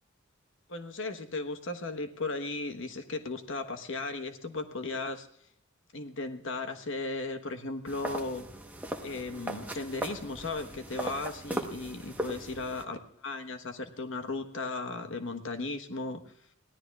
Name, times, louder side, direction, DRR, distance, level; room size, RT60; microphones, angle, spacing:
voice 1, 0.7-5.3 5.9-8.5 9.0-16.2, left 3 dB, 65° left, 6 dB, 1.2 m, -36 dB
sound 1, 7.9-12.8, right 1 dB, 10° right, 1.1 m, -38 dB
24.5 x 17.0 x 2.4 m, 0.70 s
head